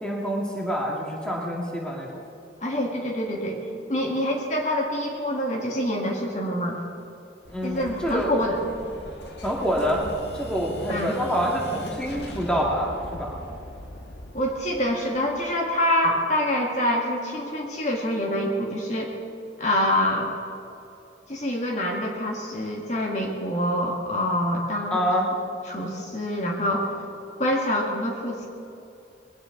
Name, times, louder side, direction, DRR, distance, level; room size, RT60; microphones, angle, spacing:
voice 1, 0.0-2.2 7.5-8.3 9.4-10.1 10.3-13.3 24.9-25.3, equal, 5° left, -3 dB, 2.0 m, -26 dB
voice 2, 2.6-3.6 3.9-6.8 7.6-8.6 10.9-11.1 14.3-19.1 19.6-20.3 21.3-25.0 25.7-26.9 27.4-28.5, left 1 dB, 40° left, -1 dB, 2.0 m, -26 dB
Explosion, 7.5-16.1, left 1 dB, 70° left, 1.4 m, -40 dB
21.0 x 17.5 x 3.9 m, 2.6 s
head